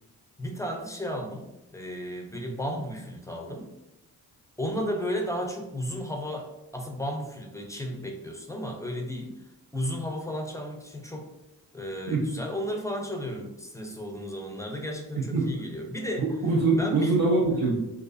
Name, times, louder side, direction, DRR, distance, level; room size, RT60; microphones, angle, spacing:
voice 1, 0.4-3.7 4.6-9.4 9.7-11.3 11.7-16.2 16.8-17.2, equal, 10° left, 2 dB, 0.4 m, -34 dB
voice 2, 15.2-15.6 16.2-17.8, right 3 dB, 60° right, -3 dB, 0.6 m, -24 dB
2.4 x 2.3 x 2.4 m, 0.91 s
cardioid pair, 55°, 41 cm